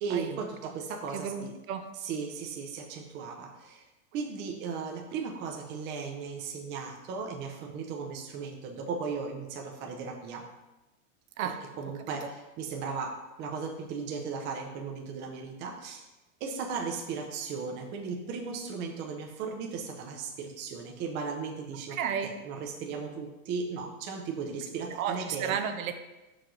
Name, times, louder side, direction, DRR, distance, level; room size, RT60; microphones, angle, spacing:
voice 1, 0.0-1.5 1.9-3.9 4.1-10.4 11.4-16.1 16.4-25.6, right 5 dB, 25° right, 1 dB, 0.6 m, -36 dB
voice 2, 1.1-1.8 11.4-11.6 12.1-12.2 21.9-22.3 24.9-26.0, right 8 dB, 70° right, 7 dB, 0.8 m, -32 dB
5.8 x 4.8 x 3.9 m, 1.0 s
supercardioid pair, 150°, 43 cm